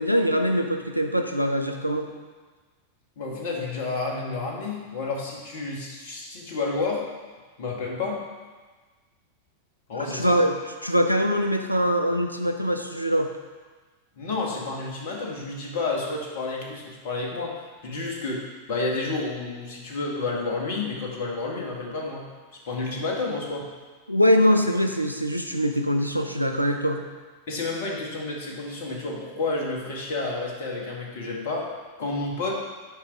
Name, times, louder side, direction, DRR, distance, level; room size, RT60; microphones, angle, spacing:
voice 1, 0.0-2.1 10.1-10.5 10.8-13.3 24.1-27.0, equal, 90° right, 5 dB, 0.6 m, -23 dB
voice 2, 3.2-7.0 7.6-8.2 9.9-10.5 14.2-22.3 22.7-23.7 27.5-31.7 32.0-32.5, left 3 dB, 55° left, -1 dB, 1.8 m, -30 dB
8.6 x 5.4 x 4.8 m, 1.3 s
figure-of-eight pair, 90°, 0 cm